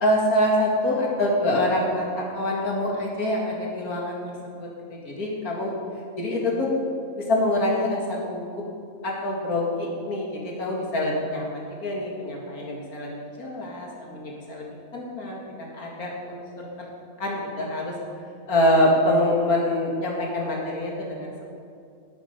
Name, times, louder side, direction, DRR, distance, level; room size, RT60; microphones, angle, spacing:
voice 1, 0.0-4.2 4.4-5.7 6.2-6.7 7.2-8.6 9.0-14.7 14.9-16.4 17.2-17.9 18.5-21.4, left 1 dB, 80° left, -2 dB, 2.6 m, -25 dB
11.0 x 8.4 x 6.8 m, 2.4 s
omnidirectional pair, 1.5 m